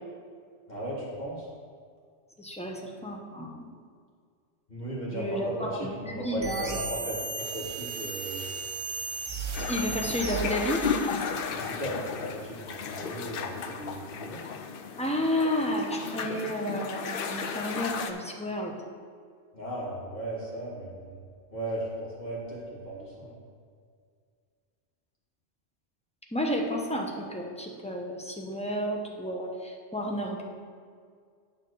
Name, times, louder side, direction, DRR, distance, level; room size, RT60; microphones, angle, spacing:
voice 1, 0.7-1.5 4.7-8.5 11.5-14.4 19.5-21.2 21.5-23.4, right 1 dB, 40° left, -6 dB, 2.1 m, -36 dB
voice 2, 2.4-3.7 5.1-6.8 9.6-10.9 15.0-18.7 26.3-30.5, equal, 5° left, 0 dB, 0.7 m, -31 dB
sound 1, 6.4-11.3, right 4 dB, 35° right, 0.5 m, -35 dB
sound 2, 9.5-18.1, left 6 dB, 60° left, 0.7 m, -34 dB
8.9 x 3.5 x 6.8 m, 2.1 s
omnidirectional pair, 1.2 m